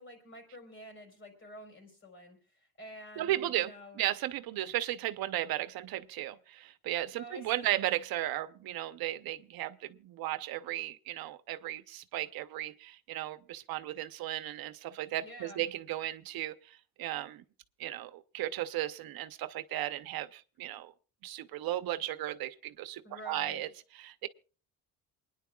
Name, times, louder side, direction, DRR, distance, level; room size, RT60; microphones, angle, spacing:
voice 1, 0.0-4.1 7.2-7.8 15.2-15.7 23.0-23.7, equal, 35° left, 4.5 m, -49 dB
voice 2, 3.2-3.7 4.0-17.4 17.8-20.9 21.2-24.3, right 14 dB, 85° right, 0.8 m, -35 dB
28.0 x 10.0 x 2.3 m
cardioid pair, 160°, 35 cm